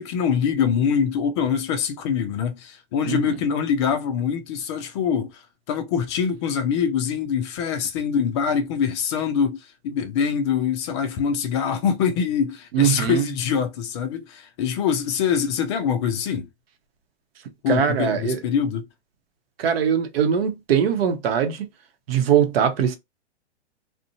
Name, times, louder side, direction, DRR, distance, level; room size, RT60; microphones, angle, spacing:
voice 1, 0.0-5.4 5.7-16.5 17.6-18.8, left 7 dB, 25° left, 0.4 m, -24 dB
voice 2, 3.1-3.4 12.7-13.3 17.7-18.4 19.6-21.7 22.1-23.0, right 8 dB, 60° right, 0.8 m, -21 dB
2.5 x 2.1 x 2.6 m
hypercardioid pair, 130°, 35 cm